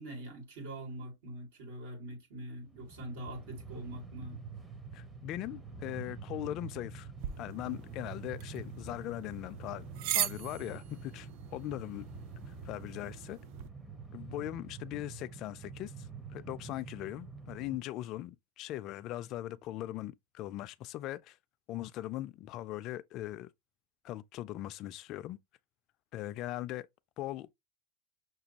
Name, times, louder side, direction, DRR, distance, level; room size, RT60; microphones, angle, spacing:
voice 1, 0.0-4.4, right 1 dB, 80° right, 2.1 m, -43 dB
Train, 2.6-17.8, right 4 dB, 10° right, 0.6 m, -47 dB
voice 2, 4.9-7.1 7.4-9.9 10.1-12.1 12.6-13.4 14.1-21.4 21.7-23.5 24.0-25.4 26.1-26.9 27.2-27.5, left 14 dB, 40° left, 0.3 m, -40 dB
sound 1, 7.2-13.7, right 12 dB, 55° right, 0.3 m, -40 dB
5.9 x 2.2 x 2.8 m
supercardioid pair, 140°, 0 cm